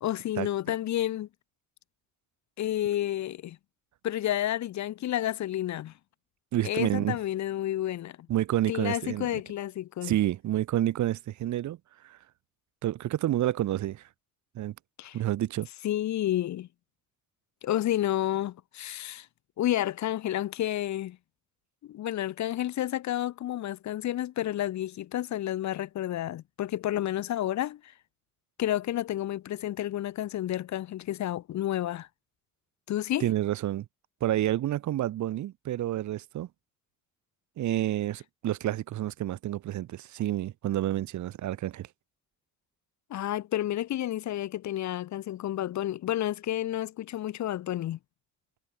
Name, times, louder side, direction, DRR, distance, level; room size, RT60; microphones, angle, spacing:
voice 1, 0.0-1.3 2.6-3.6 4.0-5.9 6.6-8.3 8.7-10.1 15.0-15.2 15.8-16.7 17.6-19.3 19.6-21.2 21.8-27.9 28.6-32.1 32.9-33.3 43.1-48.0, left 13 dB, 55° left, 0.5 m, -30 dB
voice 2, 6.5-7.2 8.3-9.4 10.0-11.8 12.0-12.2 12.8-14.1 14.5-14.7 15.1-15.7 33.2-33.9 34.2-36.5 37.6-41.9, right 13 dB, 55° right, 0.5 m, -29 dB
supercardioid pair, 50°, 35 cm